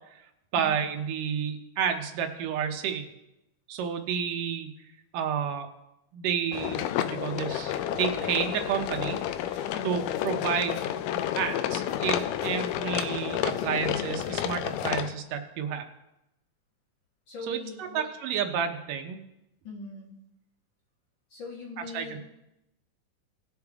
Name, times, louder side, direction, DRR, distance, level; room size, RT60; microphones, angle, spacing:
voice 1, 0.5-3.1 3.7-4.7 5.1-5.7 6.1-9.2 9.5-15.9 17.5-19.2 21.9-22.2, right 7 dB, 85° right, 5 dB, 2.6 m, -31 dB
sound 1, 6.5-15.1, left 11 dB, 85° left, 2.2 m, -30 dB
voice 2, 9.7-10.0 17.3-18.1 19.6-20.1 21.3-22.2, left 3 dB, 45° left, -4 dB, 2.0 m, -41 dB
19.0 x 6.7 x 3.6 m, 0.90 s
omnidirectional pair, 3.7 m